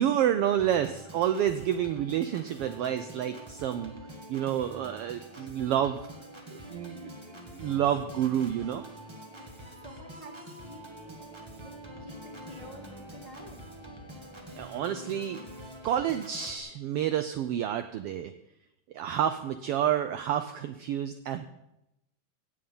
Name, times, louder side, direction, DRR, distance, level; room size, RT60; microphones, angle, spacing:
voice 1, 0.0-3.9 4.3-6.0 6.5-8.8 14.6-15.4 15.8-18.3 18.9-21.5, right 10 dB, 85° right, 9 dB, 1.3 m, -29 dB
Organ, 0.6-16.6, right 1 dB, 20° right, 0.7 m, -45 dB
voice 2, 9.3-11.2 11.6-13.7, left 1 dB, 20° left, 1 dB, 1.2 m, -50 dB
16.0 x 8.7 x 5.5 m, 0.87 s
omnidirectional pair, 3.3 m